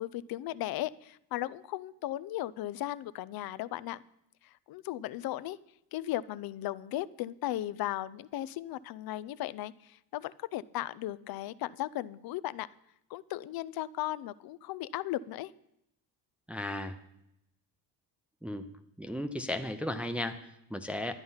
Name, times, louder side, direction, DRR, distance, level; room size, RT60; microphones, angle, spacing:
voice 1, 0.0-4.0 4.4-5.6 5.9-12.7 13.1-15.5, left 14 dB, 65° left, 17 dB, 0.5 m, -36 dB
voice 2, 16.5-17.0 18.4-18.6 19.0-21.1, left 1 dB, 5° right, 6 dB, 0.6 m, -35 dB
11.5 x 9.5 x 5.6 m, 0.80 s
cardioid pair, 130°, 39 cm